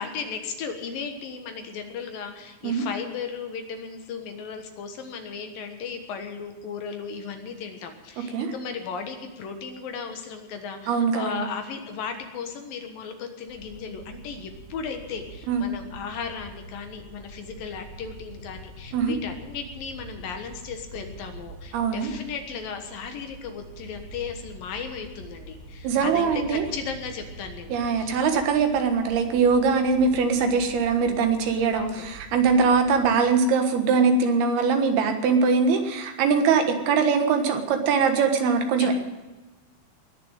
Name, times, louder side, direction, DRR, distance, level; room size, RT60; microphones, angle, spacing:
voice 1, 0.0-28.2 31.7-32.1 32.7-32.8 38.8-38.9, left 6 dB, 65° left, 5 dB, 2.9 m, -36 dB
voice 2, 8.2-8.5 10.9-11.4 15.5-15.6 18.9-19.1 21.7-22.1 25.8-26.7 27.7-38.9, right 5 dB, 75° right, 6 dB, 3.4 m, -22 dB
sound 1, 13.5-33.1, right 1 dB, 25° left, 3.3 m, -45 dB
20.5 x 7.0 x 8.9 m, 1.2 s
omnidirectional pair, 4.6 m